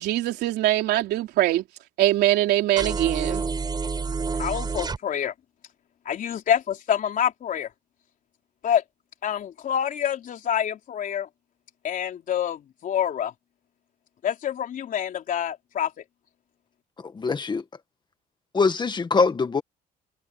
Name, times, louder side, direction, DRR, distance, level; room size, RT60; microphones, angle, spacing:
voice 1, 0.0-1.6 2.0-3.4, right 15 dB, 80° right, 3.4 m, -22 dB
sound 1, 2.8-5.0, right 4 dB, 25° right, 4.3 m, -28 dB
voice 2, 4.4-5.3 6.1-7.7 8.6-8.8 9.2-11.3 11.8-13.3 14.2-15.9, left 9 dB, 55° left, 3.8 m, -26 dB
voice 3, 17.1-17.6 18.5-19.6, left 4 dB, 25° left, 1.9 m, -23 dB
cardioid pair, 110°, 17 cm